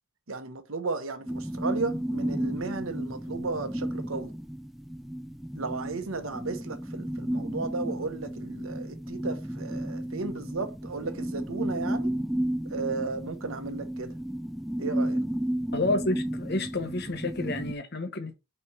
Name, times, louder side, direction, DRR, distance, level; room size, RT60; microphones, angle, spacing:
voice 1, 0.3-4.3 5.5-12.1 12.7-14.1 14.8-15.2, right 3 dB, 75° right, 1.1 m, -34 dB
sound 1, 1.3-17.7, right 1 dB, ahead, 0.4 m, -33 dB
voice 2, 15.7-18.4, left 2 dB, 50° left, 1.1 m, -30 dB
4.5 x 4.5 x 5.5 m
head